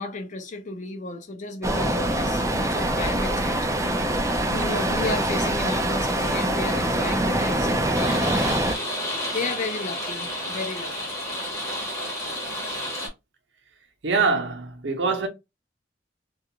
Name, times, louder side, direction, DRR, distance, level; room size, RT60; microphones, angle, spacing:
voice 1, 0.0-3.7 4.5-8.2 9.3-10.9, left 3 dB, 40° left, 0.5 m, -33 dB
sound 1, 1.6-8.8, right 1 dB, 15° right, 0.3 m, -24 dB
sound 2, 7.9-13.1, left 1 dB, 15° left, 0.8 m, -31 dB
voice 2, 14.0-15.3, right 4 dB, 70° right, 0.7 m, -24 dB
2.4 x 2.3 x 2.8 m
head